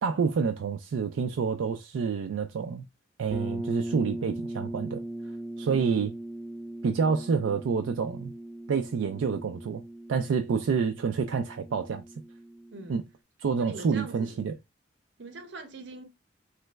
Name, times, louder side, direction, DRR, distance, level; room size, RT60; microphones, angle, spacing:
voice 1, 0.0-2.8 3.2-5.0 5.6-6.1 6.8-8.3 8.7-9.8 10.1-12.0 12.9-13.0 13.4-14.5, right 5 dB, 90° right, 0.3 m, -28 dB
sound 1, 3.3-13.0, right 1 dB, 15° right, 0.4 m, -39 dB
voice 2, 5.6-6.0 10.5-10.8 12.7-13.0 13.6-14.4 15.2-16.0, right 3 dB, 65° right, 0.7 m, -43 dB
3.2 x 2.0 x 3.3 m
head